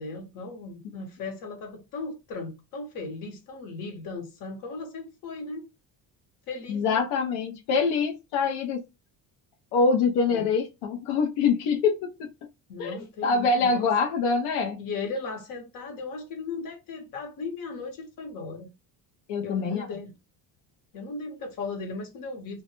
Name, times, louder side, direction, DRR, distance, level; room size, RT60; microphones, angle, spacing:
voice 1, 0.0-5.6 6.5-7.0 10.3-10.5 12.7-13.9 14.8-18.7 19.4-20.1 20.9-22.6, left 3 dB, 55° left, 0.9 m, -37 dB
voice 2, 6.7-8.8 9.7-12.3 12.8-14.8 19.3-19.9, left 4 dB, 90° left, 0.6 m, -25 dB
2.2 x 2.0 x 2.8 m
cardioid pair, 175°, 40 cm